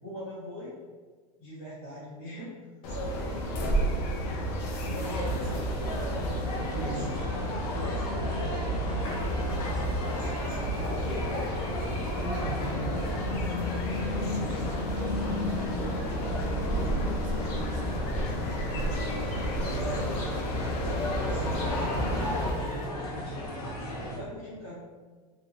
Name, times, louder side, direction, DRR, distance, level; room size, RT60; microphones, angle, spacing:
voice 1, 0.0-0.8 1.4-2.6 2.9-3.7 4.3-4.5 4.8-5.5 6.7-7.2 7.7-11.3 14.1-14.7 19.4-20.0 21.2-24.8, left 1 dB, 30° left, -12 dB, 1.1 m, -41 dB
sound 1, 2.8-22.5, equal, 50° left, 0.5 m, -31 dB
sound 2, 5.0-24.2, equal, 90° left, 0.8 m, -36 dB
voice 2, 5.0-5.6 6.8-7.4 12.2-13.5 13.8-18.9 19.7-20.7, right 5 dB, 60° right, 3 dB, 0.5 m, -41 dB
sound 3, 9.0-22.9, left 3 dB, 10° left, 0.8 m, -44 dB
2.5 x 2.2 x 2.6 m, 1.4 s
hypercardioid pair, 115°, 19 cm